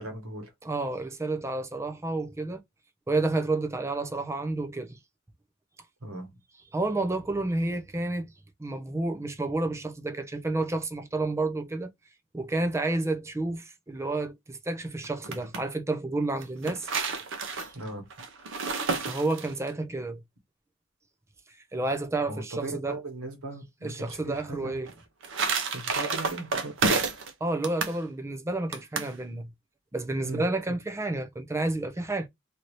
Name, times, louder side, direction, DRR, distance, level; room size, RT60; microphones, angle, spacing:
voice 1, 0.0-0.5 6.0-6.3 17.7-18.1 22.3-24.8 25.7-26.7 30.2-30.4, right 2 dB, 75° right, 1.2 m, -38 dB
voice 2, 0.6-2.6 3.1-5.0 6.7-8.3 8.6-11.9 12.3-16.9 19.1-20.2 21.7-23.0 23.8-24.9 27.4-29.5 29.9-32.3, right 2 dB, 15° right, 0.4 m, -30 dB
sound 1, 15.0-15.6 16.4-19.7 24.9-27.3 27.6-28.0 28.7-29.1, right 4 dB, 60° right, 0.7 m, -30 dB
2.8 x 2.6 x 3.0 m
head